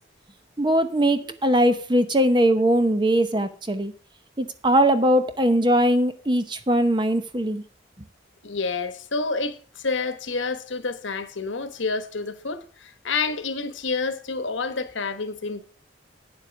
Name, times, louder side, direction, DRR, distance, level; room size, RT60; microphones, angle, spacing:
voice 1, 0.6-3.9 4.4-7.6, right 1 dB, 25° right, 0.8 m, -21 dB
voice 2, 8.4-15.6, left 4 dB, 80° left, 1.2 m, -29 dB
9.5 x 7.3 x 5.9 m
head